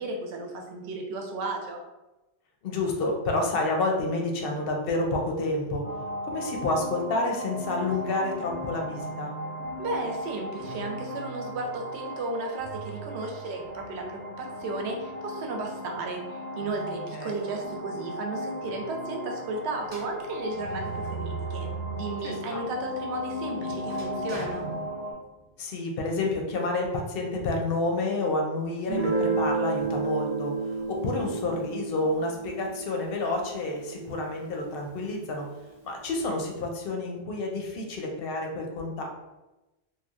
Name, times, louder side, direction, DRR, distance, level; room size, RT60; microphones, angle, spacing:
voice 1, 0.0-1.8 9.8-24.7, right 2 dB, 70° right, 2 dB, 0.8 m, -34 dB
voice 2, 2.6-5.8 6.2-9.3 17.1-17.4 22.2-22.6 25.6-30.5 31.0-35.5 35.8-39.1, left 2 dB, 60° left, 1 dB, 0.7 m, -29 dB
sound 1, 5.8-25.1, equal, 15° left, 0.6 m, -36 dB
sound 2, 19.8-22.2 22.7-25.5, right 4 dB, 10° right, 0.9 m, -39 dB
Guitar, 28.9-34.4, right 4 dB, 45° right, 0.5 m, -31 dB
3.0 x 2.3 x 2.3 m, 1.0 s
omnidirectional pair, 1.2 m